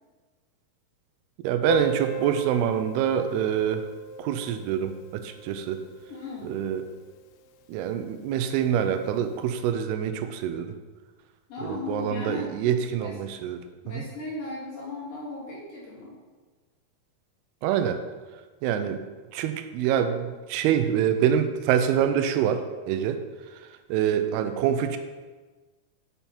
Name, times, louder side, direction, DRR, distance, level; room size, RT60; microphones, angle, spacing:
voice 1, 1.4-3.8 4.2-5.8 6.4-6.8 7.7-10.8 11.6-13.6 13.9-14.0 17.6-18.0 18.6-19.0 19.3-23.2 23.9-25.0, right 9 dB, 90° right, 8 dB, 2.6 m, -25 dB
Piano, 1.7-7.0 7.3-7.4 7.6-7.8 8.1-8.2 9.0-9.1, equal, 85° left, 2.5 m, -38 dB
voice 2, 6.1-6.6 11.5-12.5 13.0-13.2 13.8-16.2, left 3 dB, 50° left, -8 dB, 2.4 m, -36 dB
7.0 x 5.8 x 4.3 m, 1.3 s
omnidirectional pair, 4.5 m